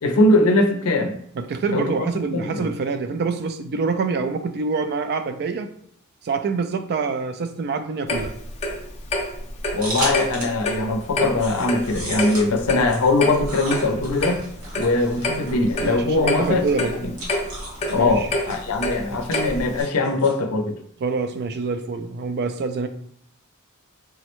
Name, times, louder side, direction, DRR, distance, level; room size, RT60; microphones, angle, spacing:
voice 1, 0.0-1.2 1.7-2.7 9.7-14.4 14.8-16.6 17.0-17.1 17.9-20.8, left 2 dB, 85° left, 5 dB, 0.5 m, -21 dB
voice 2, 1.4-5.7 6.2-8.3 15.8-16.9 17.9-18.3 21.0-22.9, right 4 dB, 50° right, 9 dB, 0.3 m, -26 dB
Clock, 8.1-19.8, left 1 dB, 30° left, 0.5 m, -28 dB
sound 1, 9.8-10.7 11.0-20.4, right 1 dB, 70° right, 1.1 m, -35 dB
3.5 x 2.1 x 2.9 m, 0.65 s
head